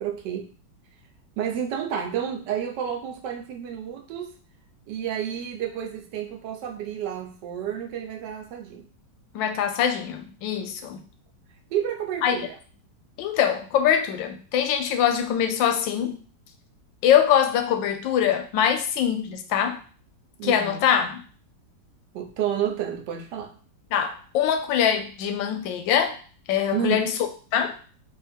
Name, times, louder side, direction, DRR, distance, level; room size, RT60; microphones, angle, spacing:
voice 1, 0.0-0.5 1.4-4.4 4.9-8.9 11.7-12.5 20.4-20.8 22.1-23.6 26.7-27.0, right 9 dB, 75° right, 5 dB, 1.2 m, -30 dB
voice 2, 9.3-11.0 12.2-12.5 13.2-16.2 17.0-19.8 20.4-21.2 23.9-26.2 26.5-27.1 27.5-27.7, left 9 dB, 90° left, 7 dB, 1.3 m, -23 dB
3.6 x 2.6 x 3.4 m, 0.40 s
omnidirectional pair, 2.0 m